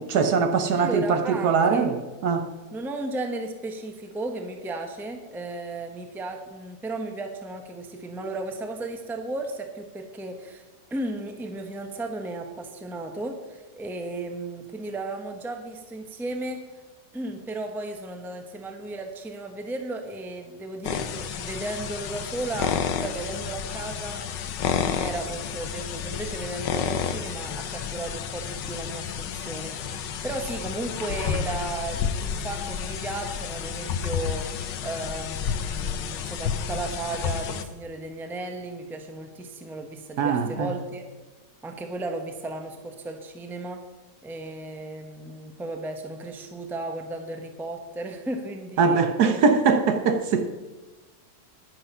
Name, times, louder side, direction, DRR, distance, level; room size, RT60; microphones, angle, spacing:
voice 1, 0.0-2.5 40.2-40.8 48.8-50.5, right 5 dB, 65° right, 1.4 m, -22 dB
voice 2, 0.8-1.9 2.7-10.6 10.9-16.6 17.1-24.3 24.6-41.0 41.6-43.8 44.2-49.4, right 2 dB, ahead, 0.8 m, -35 dB
sound 1, 20.8-37.6, left 7 dB, 85° left, 1.5 m, -31 dB
11.0 x 10.0 x 5.6 m
omnidirectional pair, 1.9 m